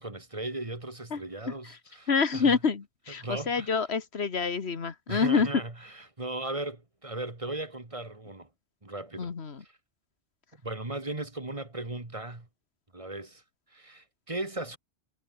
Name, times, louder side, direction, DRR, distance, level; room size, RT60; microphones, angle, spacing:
voice 1, 0.0-2.6 3.2-3.8 5.1-8.5 8.8-9.3 10.6-12.5 12.9-13.4 13.7-14.8, right 2 dB, 30° right, 2.3 m, -37 dB
voice 2, 2.1-5.5 9.2-9.6, left 5 dB, 75° left, 1.8 m, -27 dB
omnidirectional pair, 1.1 m